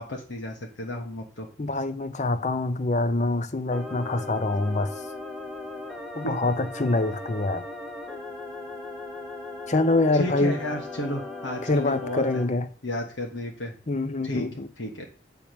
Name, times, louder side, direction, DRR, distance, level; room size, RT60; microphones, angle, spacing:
voice 1, 0.0-1.5 6.2-6.3 10.1-12.4 12.8-13.7 14.2-14.5 14.8-15.1, left 1 dB, 85° left, 1.4 m, -32 dB
voice 2, 1.6-4.9 6.2-7.6 9.7-10.6 11.7-12.7 13.9-14.7, left 2 dB, 40° left, 0.7 m, -25 dB
sound 1, 3.7-12.4, left 2 dB, ahead, 1.5 m, -38 dB
8.6 x 3.7 x 6.1 m
head